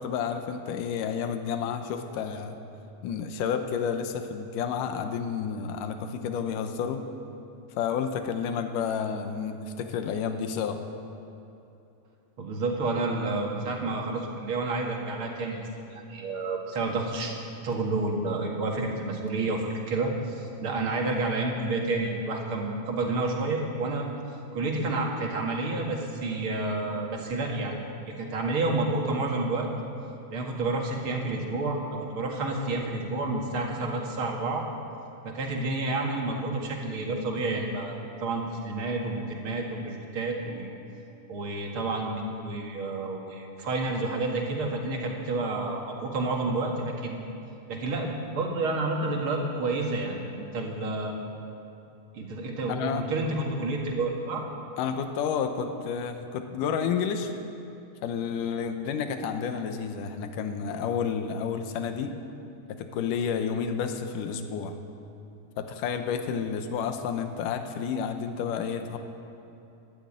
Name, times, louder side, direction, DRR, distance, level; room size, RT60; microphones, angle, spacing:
voice 1, 0.0-2.6 3.0-7.0 7.8-10.8 52.7-53.1 54.8-57.3 58.0-62.2 62.7-64.8 65.6-69.0, left 7 dB, 85° left, 7 dB, 2.5 m, -30 dB
voice 2, 12.4-17.3 17.6-24.1 24.5-27.8 28.1-29.7 30.3-31.8 32.1-34.6 35.2-40.7 41.3-47.2 47.7-51.2 52.1-54.5, right 2 dB, 45° right, 0 dB, 2.5 m, -30 dB
13.0 x 12.0 x 8.8 m, 2.8 s
omnidirectional pair, 3.6 m